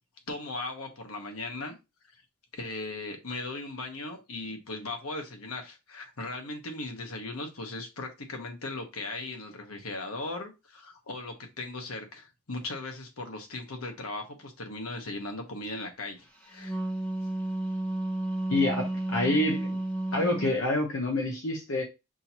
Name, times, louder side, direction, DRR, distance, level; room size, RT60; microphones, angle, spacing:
voice 1, 0.3-1.7 2.5-16.8, left 2 dB, 85° left, 4 dB, 1.2 m, -38 dB
Wind instrument woodwind instrument, 16.4-20.6, right 1 dB, 10° left, 1.0 m, -32 dB
voice 2, 18.5-19.8 20.1-21.8, left 2 dB, 70° left, 1 dB, 0.8 m, -27 dB
6.1 x 2.8 x 2.9 m, 0.26 s
head